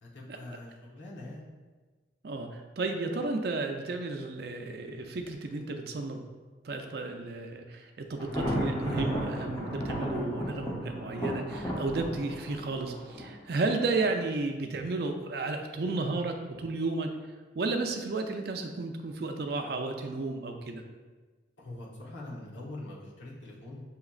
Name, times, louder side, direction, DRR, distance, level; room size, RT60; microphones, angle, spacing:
voice 1, 0.0-1.4 21.6-23.8, left 1 dB, 80° left, -4 dB, 1.0 m, -43 dB
voice 2, 2.2-6.2 6.6-17.1 17.6-20.8, right 3 dB, 55° right, 4 dB, 0.4 m, -33 dB
Thunder, 8.2-14.0, equal, 20° left, 0.7 m, -34 dB
7.0 x 2.9 x 2.4 m, 1.3 s
head